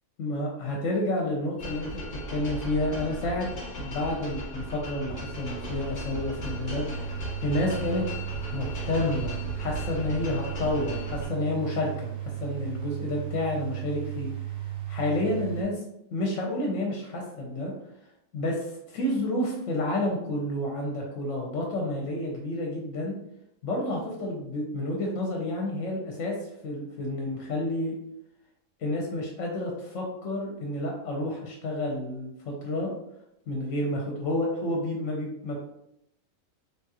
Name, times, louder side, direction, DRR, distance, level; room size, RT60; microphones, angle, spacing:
voice 1, 0.2-3.5 3.8-8.1 8.5-14.3 14.9-15.8 16.1-17.7 18.3-23.2 23.6-26.4 26.6-27.9 28.8-32.9 33.5-35.6, left 1 dB, 70° left, -1 dB, 0.9 m, -30 dB
sound 1, 1.6-11.3, equal, 40° left, 0.7 m, -37 dB
sound 2, 5.1-15.6, right 11 dB, 65° right, 0.9 m, -36 dB
3.4 x 2.3 x 2.7 m, 0.80 s
omnidirectional pair, 1.4 m